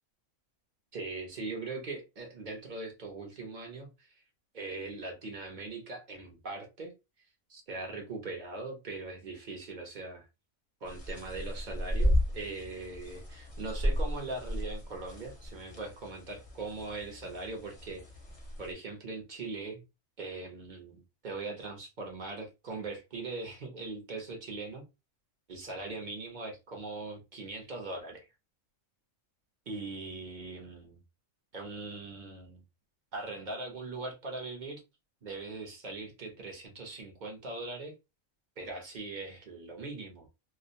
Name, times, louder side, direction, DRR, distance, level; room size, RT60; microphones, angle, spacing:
voice 1, 0.9-4.2 4.5-6.9 7.5-10.2 10.8-18.0 18.6-19.8 20.2-24.8 25.5-28.3 29.7-31.0 31.5-32.6 33.1-34.8 35.2-37.9 38.6-40.3, right 3 dB, 50° right, 0.6 m, -40 dB
sound 1, 10.9-18.7, equal, 35° left, 0.6 m, -34 dB
2.4 x 2.0 x 2.5 m
omnidirectional pair, 1.4 m